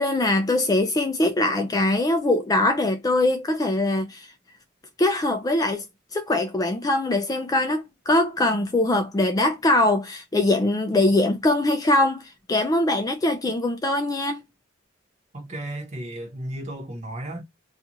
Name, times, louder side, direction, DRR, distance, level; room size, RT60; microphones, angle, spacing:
voice 1, 0.0-4.3 5.0-5.8 6.1-14.4, left 2 dB, 20° left, 0.3 m, -22 dB
voice 2, 15.3-17.4, right 1 dB, 35° right, 0.9 m, -34 dB
2.4 x 2.4 x 2.8 m
head